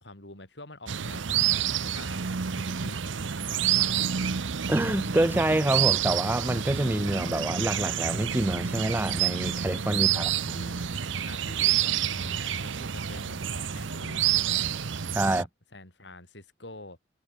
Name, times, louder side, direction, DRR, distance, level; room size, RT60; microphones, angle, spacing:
voice 1, 0.0-3.0 3.5-4.1 9.9-10.9 11.3-14.7 15.3-17.0, left 2 dB, 70° left, 7.1 m, -47 dB
sound 1, 0.9-15.4, right 9 dB, 85° right, 0.8 m, -28 dB
sound 2, 3.1-14.2, equal, 5° left, 3.6 m, -57 dB
voice 2, 4.7-10.3 15.1-15.5, right 1 dB, 10° right, 0.4 m, -27 dB
sound 3, 12.8-15.4, right 2 dB, 70° right, 6.3 m, -56 dB
head